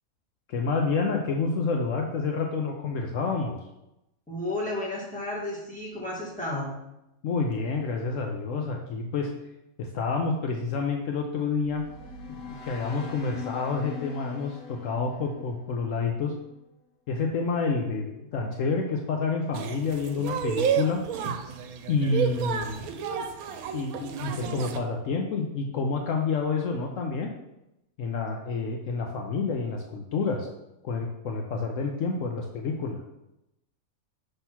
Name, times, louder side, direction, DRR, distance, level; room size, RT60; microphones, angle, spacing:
voice 1, 0.5-3.6 7.2-9.3 9.8-11.8 12.3-16.3 17.1-21.0 21.9-23.2 23.7-27.3 28.0-30.5 30.8-33.0, left 4 dB, 70° left, 2 dB, 1.0 m, -29 dB
voice 2, 4.3-6.7, left 1 dB, 5° left, -5 dB, 1.5 m, -32 dB
sound 1, 11.3-16.6, left 6 dB, 85° left, 1.3 m, -42 dB
sound 2, 19.5-24.8, right 7 dB, 85° right, 1.0 m, -30 dB
6.0 x 3.4 x 5.6 m, 0.90 s
omnidirectional pair, 1.5 m